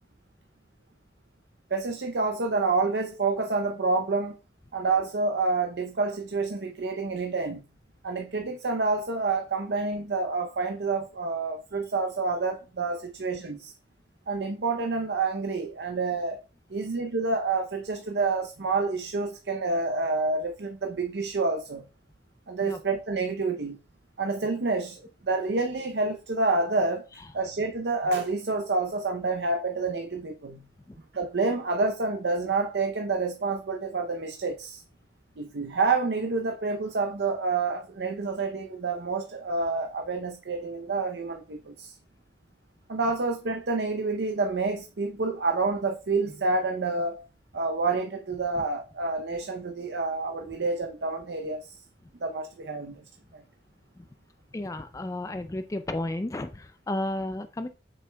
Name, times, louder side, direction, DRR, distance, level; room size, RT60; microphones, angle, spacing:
voice 1, 1.7-4.4 4.7-7.6 8.0-13.7 14.3-16.4 16.7-21.8 22.5-23.8 24.2-27.1 27.3-30.7 31.1-34.8 35.4-42.0 42.9-47.2 47.5-51.8 52.2-53.0 53.3-53.4, right 3 dB, 75° right, 0.6 m, -28 dB
voice 2, 54.5-57.7, left 1 dB, 20° left, 0.3 m, -33 dB
7.7 x 6.2 x 2.2 m
head